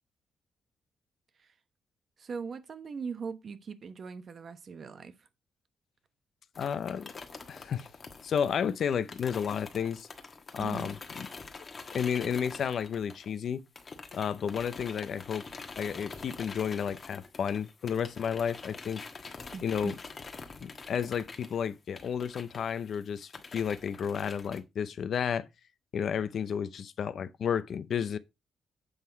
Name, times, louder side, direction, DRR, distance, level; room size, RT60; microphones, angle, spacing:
voice 1, 2.2-5.3 10.6-10.9 19.5-19.9, right 5 dB, 40° right, 1.0 m, -40 dB
voice 2, 6.6-7.1 7.5-7.9 8.2-10.1 10.5-11.3 11.9-13.6 14.1-15.5 15.8-19.0 19.6-19.9 20.6-25.5 25.9-28.2, left 7 dB, 55° left, 0.6 m, -32 dB
sound 1, 6.6-13.5 13.8-24.6, left 4 dB, 30° left, 1.3 m, -46 dB
8.1 x 5.7 x 4.5 m
cardioid pair, 150°, 0 cm